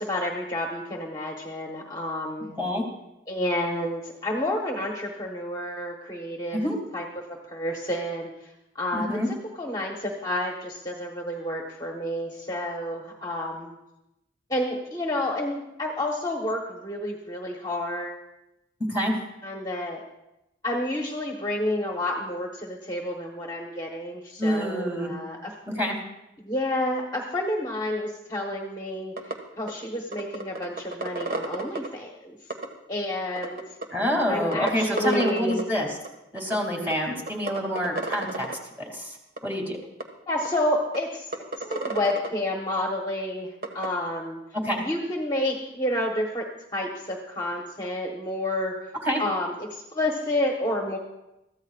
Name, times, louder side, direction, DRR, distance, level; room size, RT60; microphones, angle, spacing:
voice 1, 0.0-2.6 3.3-6.6 6.9-8.3 8.7-9.1 9.6-13.7 14.5-18.2 19.4-20.0 20.6-25.5 26.4-32.4 32.9-33.6 34.3-35.6 40.3-41.3 41.6-43.5 43.7-44.4 44.8-46.5 46.7-48.8 49.2-51.0, left 1 dB, 20° left, 0 dB, 1.1 m, -30 dB
voice 2, 8.9-9.3 18.9-19.1 24.4-25.1 25.7-26.0 33.9-36.0 36.3-38.5 38.9-39.2 39.4-39.8 44.6-44.8 49.0-49.2, equal, 10° right, 0 dB, 2.4 m, -27 dB
sound 1, 29.2-29.3 29.7-29.8 30.1-31.9 32.5-32.7 33.4-33.8 34.2-34.3 34.5-35.8 36.0-36.1 36.4-36.6 36.9-37.0 37.3-38.5 39.4-39.5 40.0-40.1 40.4-40.5 40.9-41.0 41.3-42.3 43.6-43.9, right 2 dB, 50° right, 1.6 m, -31 dB
22.5 x 14.5 x 2.4 m, 0.90 s
head